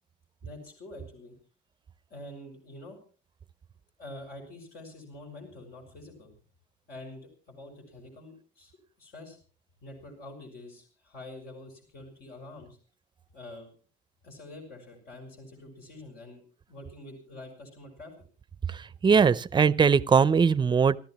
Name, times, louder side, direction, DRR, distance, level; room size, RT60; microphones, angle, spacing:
voice 1, 0.4-1.3 2.1-3.0 4.0-6.3 6.9-8.7 9.0-9.4 9.8-12.8 13.3-13.7 14.2-16.4 16.7-18.1, left 2 dB, 65° left, 2 dB, 6.7 m, -46 dB
voice 2, 19.0-21.0, right 6 dB, 25° right, 18 dB, 0.7 m, -20 dB
28.5 x 14.0 x 3.1 m, 0.37 s
cardioid pair, 110°, 17 cm